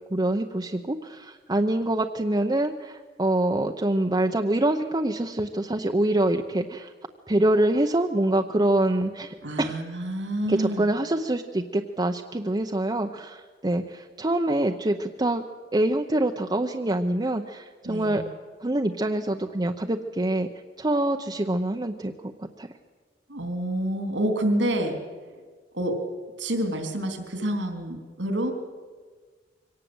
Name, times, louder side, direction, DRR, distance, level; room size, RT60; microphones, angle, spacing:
voice 1, 0.1-6.9 7.3-9.8 10.5-15.4 15.7-18.2 18.6-20.5 20.8-22.3 22.6-22.7, right 1 dB, 25° right, 4 dB, 0.8 m, -25 dB
voice 2, 9.4-10.9 17.8-18.2 23.3-25.0 25.7-26.0 26.4-28.5, right 1 dB, 85° right, 5 dB, 3.5 m, -28 dB
24.0 x 18.0 x 8.0 m, 1.5 s
head